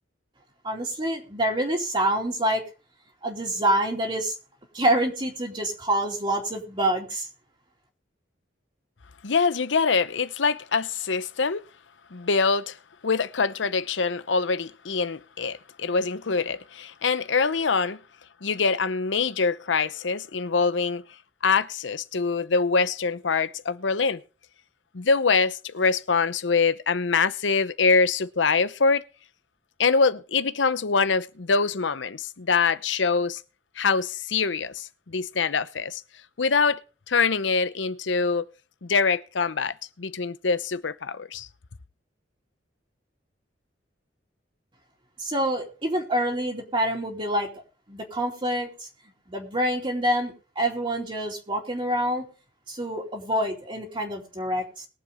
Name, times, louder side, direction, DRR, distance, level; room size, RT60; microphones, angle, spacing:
voice 1, 0.6-2.6 3.2-4.4 4.7-7.3 45.2-47.5 47.9-48.9 49.3-52.2 52.7-54.9, right 1 dB, 30° right, 2.7 m, -26 dB
voice 2, 9.2-11.6 12.1-12.8 13.0-18.0 18.4-21.0 21.4-24.2 24.9-29.0 29.8-33.4 33.8-36.0 36.4-36.8 37.1-38.4 38.8-41.5, left 4 dB, 80° left, 0.8 m, -24 dB
21.5 x 7.3 x 3.5 m
head